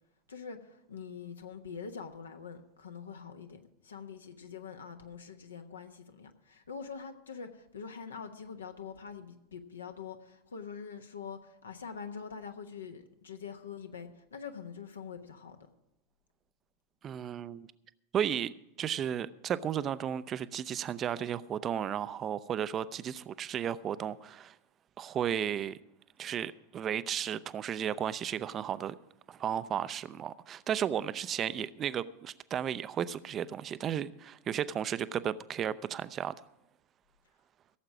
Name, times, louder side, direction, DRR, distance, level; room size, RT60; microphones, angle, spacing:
voice 1, 0.3-15.6, left 6 dB, 75° left, 1.2 m, -44 dB
voice 2, 17.0-17.7 18.1-18.5 18.8-24.5 25.0-25.8 26.2-28.9 29.3-36.3, right 9 dB, 30° right, 0.5 m, -34 dB
16.5 x 7.5 x 6.1 m
figure-of-eight pair, 85°, 0 cm